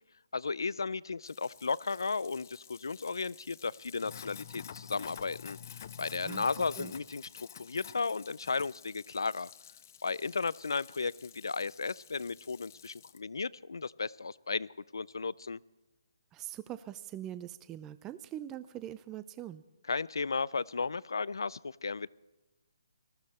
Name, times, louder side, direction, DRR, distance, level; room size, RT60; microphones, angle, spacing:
voice 1, 0.3-5.6 6.0-9.5 10.0-15.6 19.9-22.1, left 4 dB, 85° left, 22 dB, 0.4 m, -34 dB
Sink (filling or washing), 1.2-13.2, left 9 dB, 45° left, 0.6 m, -50 dB
voice 2, 6.2-6.9 16.3-19.6, right 12 dB, 15° right, 14 dB, 0.4 m, -43 dB
19.5 x 14.5 x 4.2 m, 1.1 s
hypercardioid pair, 160°, 2 cm